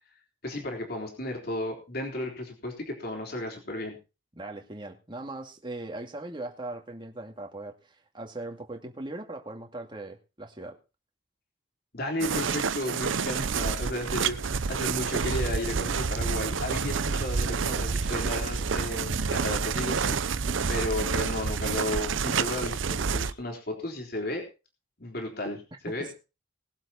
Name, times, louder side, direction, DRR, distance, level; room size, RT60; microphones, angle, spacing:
voice 1, 0.4-4.0 11.9-24.5 25.0-26.1, left 1 dB, 55° left, 2 dB, 3.7 m, -34 dB
voice 2, 4.4-7.7 8.1-10.8 20.4-20.7 25.9-26.1, right 2 dB, 25° right, 2 dB, 2.3 m, -39 dB
sound 1, 12.2-23.3, right 5 dB, 90° right, 0.7 m, -28 dB
20.5 x 7.8 x 4.3 m, 0.31 s
head